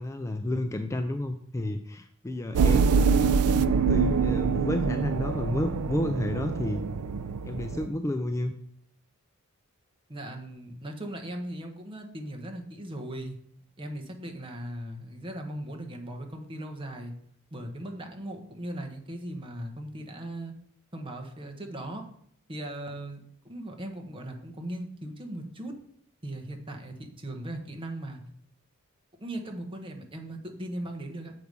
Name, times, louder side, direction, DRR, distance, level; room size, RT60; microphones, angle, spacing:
voice 1, 0.0-3.0 3.9-6.8 7.4-8.5, left 1 dB, 15° left, 7 dB, 0.3 m, -31 dB
sound 1, 2.5-7.9, right 5 dB, 75° right, 0.4 m, -25 dB
voice 2, 10.1-13.4 13.8-17.1 17.5-20.5 20.9-22.0 22.5-25.7 26.2-28.2 29.2-31.3, right 1 dB, 25° right, 2 dB, 1.1 m, -38 dB
7.2 x 4.7 x 5.3 m, 0.66 s
head